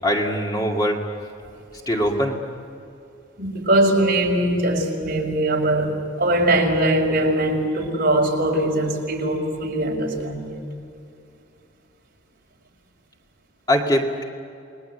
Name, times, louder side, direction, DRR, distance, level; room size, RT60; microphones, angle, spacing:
voice 1, 0.0-1.0 1.9-2.4 13.7-14.2, equal, 20° left, 0 dB, 2.2 m, -21 dB
voice 2, 3.4-10.6, right 1 dB, 45° right, 0 dB, 5.1 m, -21 dB
29.5 x 21.0 x 8.1 m, 2.7 s
head